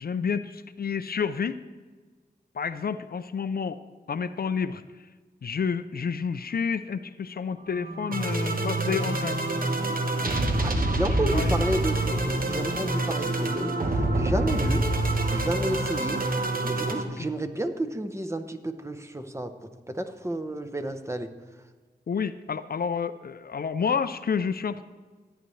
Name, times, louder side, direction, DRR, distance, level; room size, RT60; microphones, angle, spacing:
voice 1, 0.0-1.6 2.5-3.8 4.1-4.8 5.4-9.4 11.2-11.6 14.6-14.7 22.1-24.8, left 6 dB, 65° left, 12 dB, 0.4 m, -29 dB
sound 1, 7.7-17.0, right 2 dB, 60° right, 1.1 m, -26 dB
voice 2, 10.6-14.8 15.3-21.3, right 1 dB, 15° right, 6 dB, 0.8 m, -31 dB
13.5 x 9.0 x 3.2 m, 1.4 s
cardioid pair, 45°, 17 cm